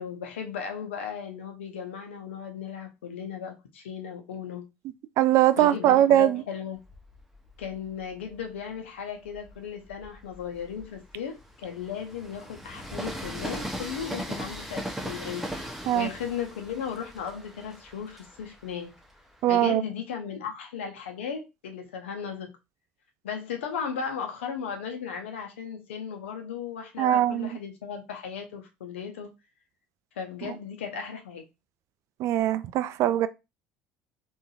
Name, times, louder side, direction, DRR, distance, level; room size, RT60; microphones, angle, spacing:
voice 1, 0.0-4.7 5.6-6.8 7.6-18.9 19.5-22.5 23.2-29.3 30.2-31.4, left 7 dB, 80° left, 0.7 m, -36 dB
voice 2, 5.2-6.4 15.9-16.1 19.4-19.8 27.0-27.5 32.2-33.3, right 13 dB, 55° right, 0.3 m, -21 dB
Train, 6.8-8.5 9.1-19.7, equal, 5° right, 0.7 m, -39 dB
3.8 x 2.4 x 2.3 m
hypercardioid pair, 65°, 6 cm